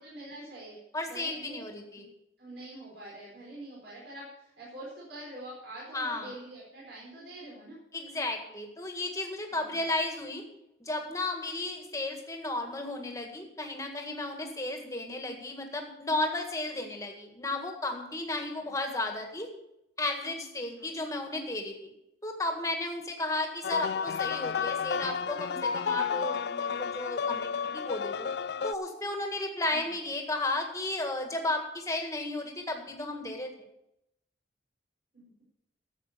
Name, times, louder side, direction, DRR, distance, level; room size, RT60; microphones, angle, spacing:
voice 1, 0.0-0.8 1.1-1.7 1.9-2.0 2.4-7.8 9.5-9.7 18.6-18.7 20.7-20.9 29.7-29.9 35.1-35.4, right 1 dB, 65° right, -5 dB, 4.7 m, -45 dB
voice 2, 0.9-2.0 5.9-6.4 7.9-10.4 10.8-19.5 20.0-21.9 22.2-28.3 28.6-33.5, left 2 dB, 15° left, 3 dB, 1.8 m, -34 dB
sound 1, 23.6-28.7, left 6 dB, 60° left, 0.3 m, -31 dB
13.0 x 7.8 x 6.8 m, 0.84 s
head